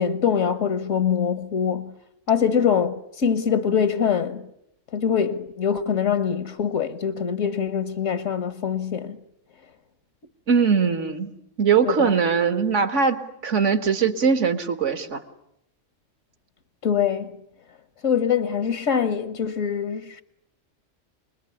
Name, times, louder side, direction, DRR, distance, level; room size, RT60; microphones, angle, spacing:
voice 1, 0.0-1.9 2.3-4.4 4.9-9.2 11.9-12.1 16.8-17.4 18.0-20.2, left 7 dB, 80° left, 1.7 m, -23 dB
voice 2, 10.5-11.3 11.6-15.2, right 6 dB, 70° right, 2.0 m, -21 dB
27.5 x 21.5 x 9.9 m
omnidirectional pair, 1.3 m